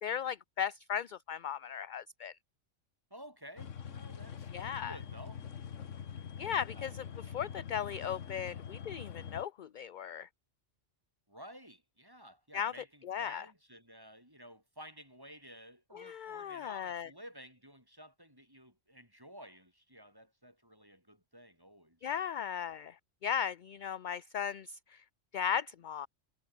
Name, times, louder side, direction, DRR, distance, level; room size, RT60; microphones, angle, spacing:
voice 1, 0.0-2.3 4.5-4.9 6.4-7.0 7.3-10.3 12.5-12.7 13.0-13.4 15.9-17.1 22.0-22.9 23.2-24.8 25.3-26.1, left 8 dB, 50° left, 0.6 m, -36 dB
voice 2, 3.1-5.4 6.7-6.9 11.3-22.1, equal, 15° right, 8.0 m, -53 dB
sound 1, 3.6-9.4, left 7 dB, 80° left, 1.5 m, -44 dB
omnidirectional pair, 1.3 m